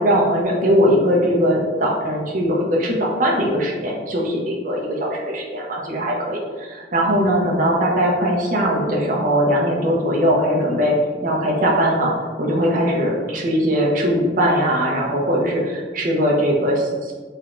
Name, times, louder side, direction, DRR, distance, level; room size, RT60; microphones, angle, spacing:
voice 1, 0.0-11.0 11.2-17.1, equal, 50° right, -2 dB, 0.6 m, -20 dB
3.2 x 3.1 x 2.5 m, 1.4 s
head